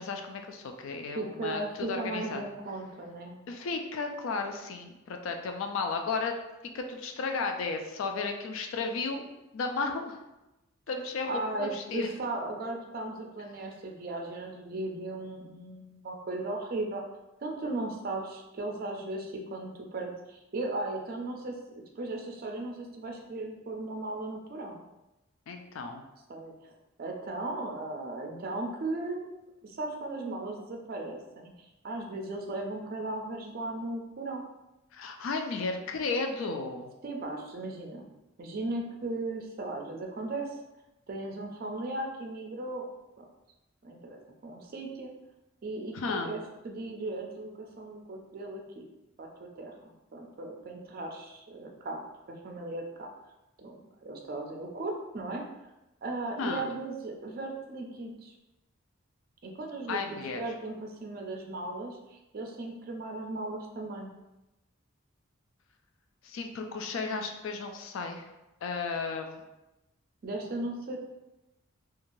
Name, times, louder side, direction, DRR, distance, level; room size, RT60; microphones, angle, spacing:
voice 1, 0.0-2.4 3.5-6.3 6.7-9.2 9.5-10.2 10.9-12.1 25.5-26.0 34.9-36.9 45.9-46.3 56.4-56.7 59.9-60.4 66.2-68.3 68.6-69.4, left 4 dB, 65° left, 4 dB, 0.3 m, -34 dB
voice 2, 1.1-3.4 11.3-17.0 17.4-21.5 22.0-24.9 26.3-26.5 27.0-29.3 29.6-31.5 31.8-34.5 37.0-38.1 38.4-40.5 41.1-42.9 43.2-43.3 43.8-45.1 45.6-48.9 49.2-52.0 52.4-53.1 53.6-55.4 56.0-58.3 59.4-64.1 70.2-71.0, right 2 dB, 45° right, 1 dB, 0.4 m, -37 dB
3.0 x 2.3 x 2.6 m, 0.98 s
head